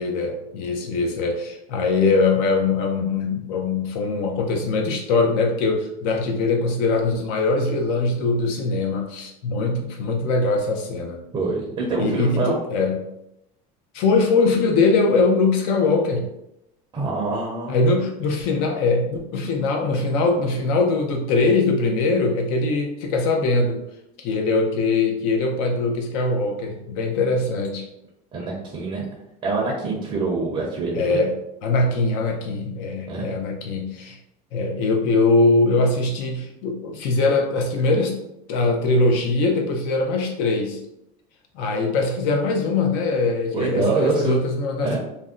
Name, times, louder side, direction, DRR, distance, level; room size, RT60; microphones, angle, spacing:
voice 1, 0.0-11.2 12.0-13.0 13.9-16.3 17.7-23.8 24.2-27.9 30.9-31.3 31.6-34.2 34.5-38.1 38.5-40.8 41.5-45.0, left 3 dB, 60° left, 2 dB, 0.5 m, -22 dB
voice 2, 11.3-12.6 16.9-18.0 28.3-29.0 29.4-31.2 33.1-33.3 43.5-44.4 44.8-45.0, right 3 dB, 25° right, -2 dB, 0.6 m, -25 dB
2.5 x 2.1 x 3.5 m, 0.84 s
cardioid pair, 150°, 18 cm